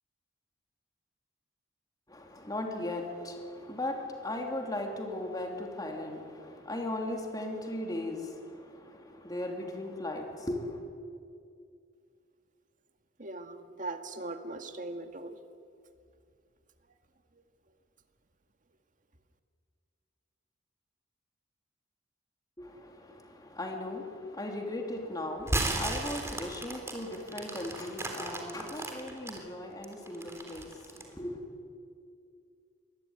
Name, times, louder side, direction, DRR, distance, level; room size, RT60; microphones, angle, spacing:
voice 1, 2.1-10.8 22.6-31.4, left 1 dB, 20° left, 2 dB, 3.2 m, -37 dB
voice 2, 13.2-15.4, right 2 dB, 45° right, 6 dB, 2.0 m, -40 dB
sound 1, 25.4-29.4 29.8-31.1, right 2 dB, 15° right, 3.7 m, -34 dB
25.0 x 21.0 x 9.7 m, 2.3 s
head